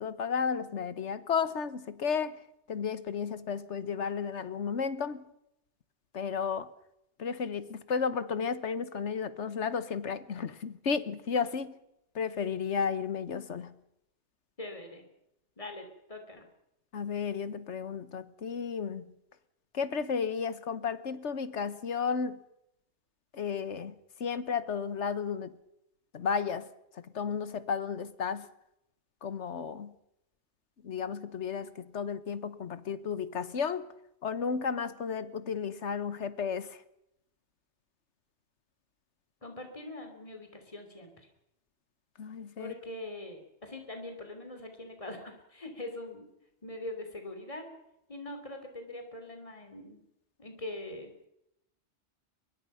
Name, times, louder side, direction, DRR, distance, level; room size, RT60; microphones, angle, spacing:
voice 1, 0.0-2.4 2.7-5.2 6.1-6.7 7.2-11.7 12.1-13.7 16.9-19.1 19.7-22.4 23.3-23.9 24.2-25.6 26.1-26.7 26.9-28.5 29.2-29.9 30.8-33.9 34.2-36.8 42.2-42.7, left 6 dB, 80° left, 1.5 m, -33 dB
voice 2, 14.6-15.0 15.6-16.4 39.4-41.1 42.6-46.3 46.6-47.7 48.1-50.0 50.4-51.3, left 1 dB, 30° left, 3.2 m, -42 dB
23.5 x 22.5 x 5.6 m
omnidirectional pair, 1.2 m